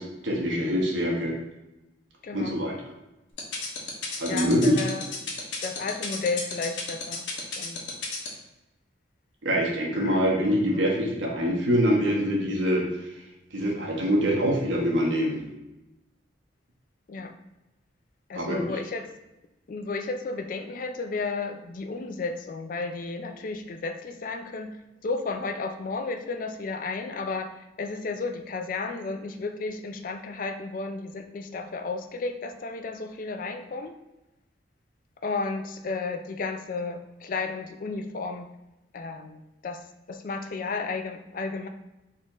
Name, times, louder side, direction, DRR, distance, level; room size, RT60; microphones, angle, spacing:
voice 1, 0.0-1.3 2.3-2.7 4.2-4.8 9.4-12.9 13.5-15.4 18.3-18.6, equal, 85° right, -1 dB, 1.1 m, -24 dB
voice 2, 2.2-2.6 4.3-5.1 5.6-7.2 7.6-7.8 10.0-10.2 17.1-17.3 18.3-19.1 19.7-24.8 25.0-34.0 35.2-38.5 38.9-39.8 40.1-41.7, left 3 dB, 45° left, 6 dB, 0.4 m, -33 dB
sound 1, 3.4-8.3, left 5 dB, 75° left, 0.9 m, -32 dB
4.2 x 3.7 x 2.9 m, 0.98 s
head